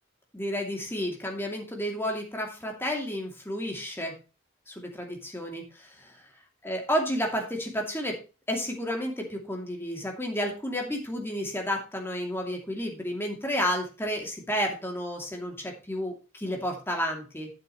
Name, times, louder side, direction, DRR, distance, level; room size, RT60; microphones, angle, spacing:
voice 1, 0.3-4.2 4.7-6.2 6.6-8.2 8.5-17.5, equal, 10° left, 1 dB, 2.5 m, -31 dB
11.5 x 7.9 x 3.1 m, 0.32 s
head